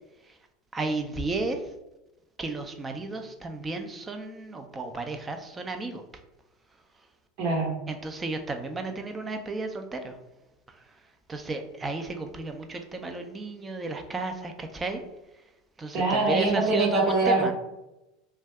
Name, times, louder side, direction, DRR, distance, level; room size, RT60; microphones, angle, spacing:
voice 1, 0.7-1.7 2.4-6.0 7.9-10.2 10.7-11.0 11.3-15.0 15.4-15.5 15.8-17.5, right 3 dB, 20° right, 6 dB, 0.4 m, -33 dB
voice 2, 7.4-7.7 15.9-17.5, right 3 dB, 60° right, -1 dB, 1.1 m, -23 dB
2.6 x 2.3 x 3.3 m, 0.96 s
hypercardioid pair, 85°, 0 cm